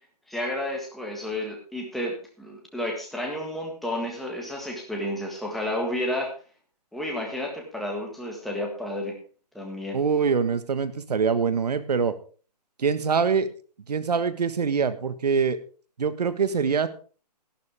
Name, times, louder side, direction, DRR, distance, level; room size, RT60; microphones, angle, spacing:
voice 1, 0.3-6.3 6.9-9.2 9.6-10.0, left 1 dB, ahead, -1 dB, 1.7 m, -31 dB
voice 2, 9.9-12.1 12.8-13.5 13.9-15.6 16.0-16.9, right 5 dB, 70° right, 12 dB, 1.5 m, -24 dB
13.0 x 12.0 x 3.5 m, 0.39 s
hypercardioid pair, 165°, 21 cm